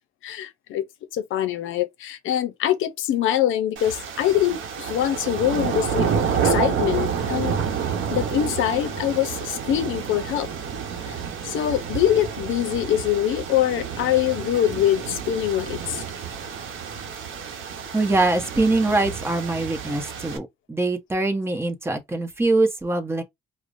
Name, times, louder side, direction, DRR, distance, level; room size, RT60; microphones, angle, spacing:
voice 1, 0.2-0.8 1.1-6.1 6.4-7.5 8.1-10.5 11.1-11.2 11.4-16.0, left 11 dB, 85° left, 0.6 m, -24 dB
sound 1, 3.8-20.4, right 6 dB, 80° right, 0.9 m, -29 dB
voice 2, 17.9-23.2, right 2 dB, 10° right, 0.8 m, -23 dB
4.9 x 2.0 x 2.5 m
cardioid pair, 90°, 20 cm